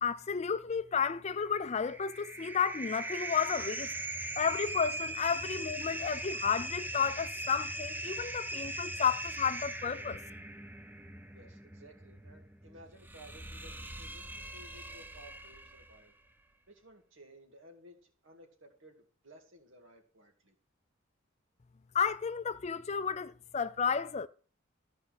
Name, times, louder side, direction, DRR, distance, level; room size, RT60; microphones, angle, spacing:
voice 1, 0.0-3.9 4.4-10.2 21.9-24.3, left 6 dB, 35° left, 0.4 m, -32 dB
sound 1, 1.4-16.0, right 2 dB, 10° right, 0.7 m, -40 dB
voice 2, 11.3-13.7 14.0-16.1 16.7-20.5, right 1 dB, 70° right, 2.3 m, -57 dB
13.5 x 5.3 x 6.4 m
head